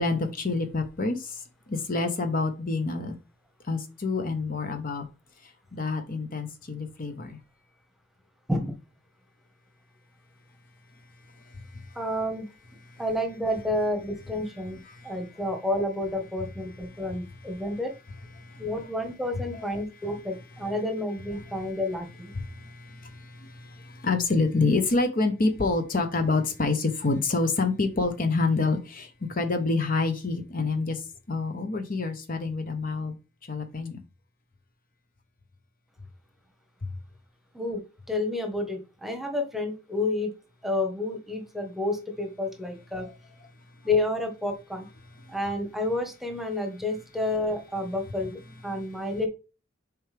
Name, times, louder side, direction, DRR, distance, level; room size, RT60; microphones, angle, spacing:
voice 1, 0.0-1.4 1.7-3.1 3.7-5.1 5.7-7.4 14.9-15.1 18.4-18.6 19.5-19.6 22.5-31.0 31.3-33.2 33.5-34.0 43.0-43.1, left 3 dB, 40° left, 7 dB, 0.9 m, -27 dB
voice 2, 11.9-12.5 13.0-14.8 15.0-17.9 18.6-22.3 37.5-37.8 38.1-40.3 40.6-43.1 43.8-44.9 45.3-49.3, left 2 dB, ahead, 4 dB, 1.2 m, -30 dB
7.1 x 4.6 x 3.4 m, 0.30 s
head